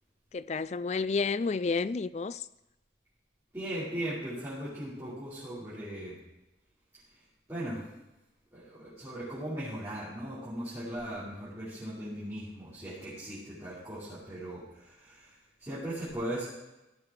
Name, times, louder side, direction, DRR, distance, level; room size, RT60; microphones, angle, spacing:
voice 1, 0.3-2.5, left 4 dB, 35° left, 0.3 m, -30 dB
voice 2, 3.5-6.1 7.5-7.8 8.5-16.5, right 1 dB, 15° right, 5.6 m, -38 dB
17.0 x 8.5 x 4.8 m
head